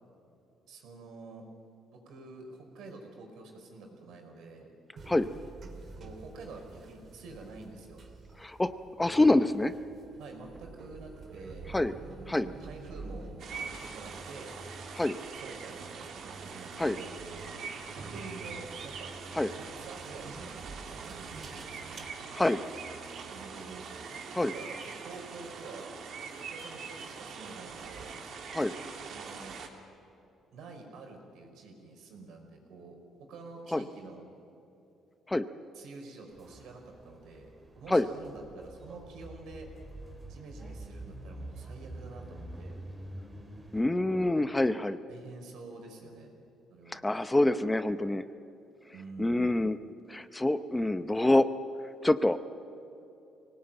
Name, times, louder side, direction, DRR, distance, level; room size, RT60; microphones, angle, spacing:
voice 1, 0.7-1.5 1.9-4.7 6.0-8.0 10.2-11.7 12.0-14.5 15.3-19.1 19.5-22.1 23.3-23.9 24.4-26.0 26.4-28.1 29.1-29.6 30.5-34.2 35.7-39.7 40.3-42.8 45.1-46.3 46.7-47.0 48.9-49.5, right 3 dB, 80° right, 3 dB, 5.1 m, -48 dB
sound 1, 5.0-22.0, right 3 dB, 45° right, 2.7 m, -49 dB
voice 2, 9.0-9.7 11.7-11.9 12.3-12.5 15.0-15.2 16.8-17.0 19.3-19.5 22.3-22.6 24.3-24.5 28.5-28.7 33.7-33.8 35.3-35.5 37.9-38.0 43.7-45.0 46.9-48.2 49.2-49.8 50.1-51.5 52.0-52.4, left 2 dB, 10° left, 11 dB, 0.7 m, -26 dB
sound 2, 13.4-29.7, right 5 dB, 65° right, 2.9 m, -43 dB
sound 3, 36.3-43.8, right 1 dB, 20° right, 3.7 m, -46 dB
24.0 x 18.5 x 9.0 m, 2.9 s
cardioid pair, 115°, 0 cm